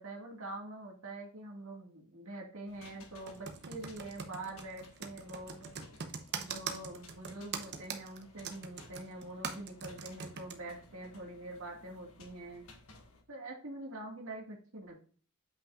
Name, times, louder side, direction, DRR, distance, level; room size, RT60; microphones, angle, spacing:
voice 1, 0.0-5.7 6.4-12.7 13.3-15.1, right 2 dB, 70° right, 0 dB, 2.0 m, -45 dB
sound 1, 2.7-13.2, left 2 dB, 75° left, 1.5 m, -58 dB
Computer keyboard, 3.3-10.6, right 6 dB, 50° right, 0.9 m, -41 dB
8.3 x 5.6 x 2.5 m, 0.41 s
head